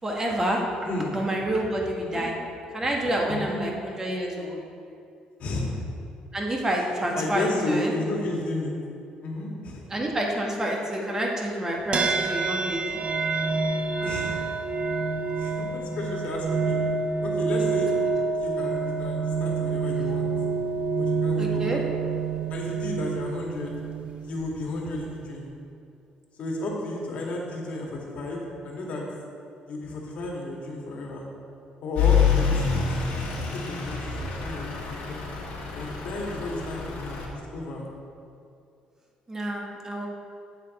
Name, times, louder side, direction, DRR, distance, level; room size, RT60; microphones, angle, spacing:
voice 1, 0.0-0.6 1.1-2.3 2.7-4.6 6.3-7.9 9.9-13.0 21.4-21.8 39.3-40.1, right 1 dB, 20° right, -1 dB, 1.4 m, -28 dB
voice 2, 0.8-1.2 2.0-2.3 3.3-3.6 5.4-5.8 7.2-8.7 9.2-9.8 14.0-14.4 15.4-16.8 17.2-17.9 18.3-20.3 20.9-21.8 22.5-23.7 24.2-25.5 26.4-29.0 29.7-31.3 31.8-32.8 33.1-35.2 35.8-37.2 37.5-37.9, left 2 dB, 55° left, -2 dB, 1.8 m, -33 dB
sound 1, 11.9-25.4, right 4 dB, 40° right, 0.7 m, -28 dB
Truck / Idling, 32.0-37.3, left 6 dB, 80° left, 1.7 m, -27 dB
8.1 x 6.8 x 4.2 m, 2.5 s
cardioid pair, 105°, 3 cm